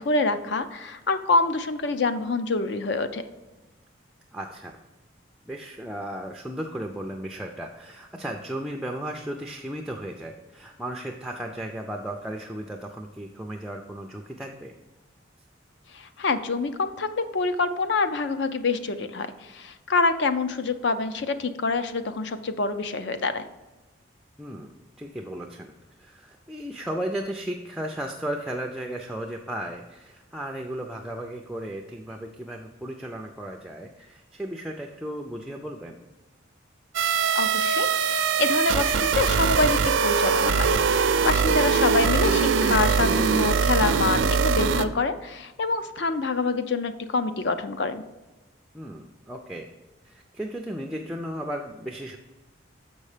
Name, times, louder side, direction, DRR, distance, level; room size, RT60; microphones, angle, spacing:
voice 1, 0.0-3.2 15.9-23.4 37.3-40.7 41.2-48.0, left 3 dB, 60° left, 10 dB, 0.5 m, -26 dB
voice 2, 4.3-4.8 5.5-14.7 24.4-24.7 25.0-25.7 26.0-36.0 48.7-49.7 50.0-52.2, right 1 dB, 5° right, 2 dB, 0.4 m, -35 dB
sound 1, 36.9-44.8, right 5 dB, 70° right, 0.5 m, -22 dB
7.1 x 5.4 x 4.9 m, 1.1 s
head